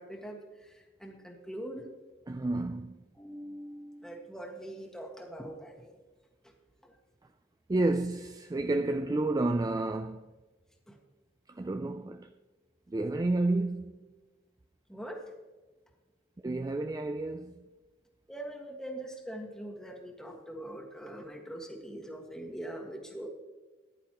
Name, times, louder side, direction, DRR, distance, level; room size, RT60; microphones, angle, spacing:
voice 1, 0.0-1.9 3.2-6.0 6.4-6.5 6.8-7.0 10.9-11.0 14.9-15.2 18.3-23.3, right 1 dB, 5° left, 1.6 m, -43 dB
voice 2, 2.3-3.1 7.7-10.2 11.5-12.3 12.9-13.9 16.4-17.7, right 2 dB, 20° right, 0.3 m, -30 dB
15.0 x 10.5 x 3.0 m
head